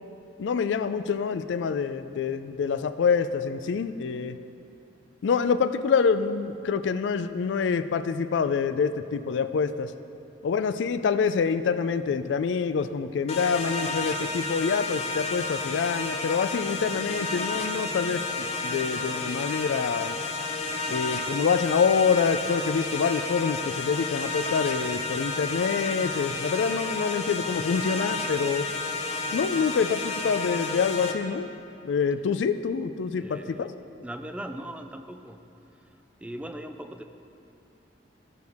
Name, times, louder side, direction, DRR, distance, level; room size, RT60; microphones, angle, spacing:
voice 1, 0.4-4.4 5.2-9.9 10.4-20.2 20.9-28.7 29.3-31.5 31.8-33.7, left 5 dB, 85° left, 11 dB, 0.4 m, -26 dB
sound 1, 13.3-31.1, left 3 dB, 40° left, 0.6 m, -31 dB
voice 2, 33.2-33.7 34.0-35.4 36.2-37.0, right 1 dB, 5° right, 7 dB, 0.3 m, -39 dB
13.5 x 6.3 x 3.5 m, 2.7 s
head